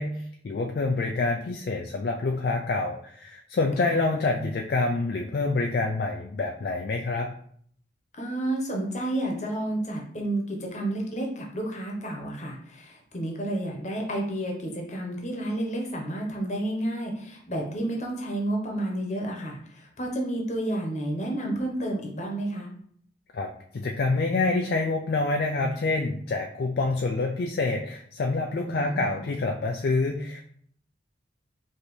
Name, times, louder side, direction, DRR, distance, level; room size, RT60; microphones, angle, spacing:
voice 1, 0.0-7.3 23.3-30.4, left 3 dB, 55° left, 2 dB, 0.3 m, -27 dB
voice 2, 8.2-22.7 28.7-29.2, right 1 dB, 40° left, 0 dB, 0.9 m, -31 dB
5.1 x 2.9 x 3.1 m, 0.63 s
head